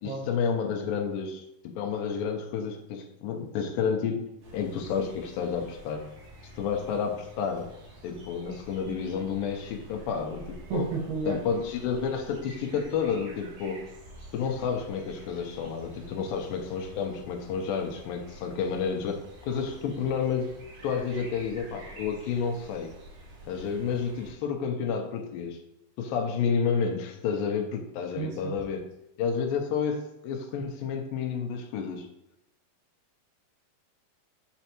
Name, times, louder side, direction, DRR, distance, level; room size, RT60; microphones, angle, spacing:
voice 1, 0.0-6.0 6.6-7.7 8.0-10.9 11.3-13.8 14.3-20.5 20.8-22.9 23.5-25.6 26.0-28.8 29.2-32.1, left 6 dB, 90° left, 3 dB, 2.0 m, -30 dB
sound 1, 4.4-24.3, right 1 dB, 60° right, 2.5 m, -49 dB
voice 2, 10.7-11.4 28.2-28.6, right 4 dB, 75° right, -2 dB, 3.4 m, -31 dB
7.9 x 4.2 x 2.9 m, 0.84 s
omnidirectional pair, 4.6 m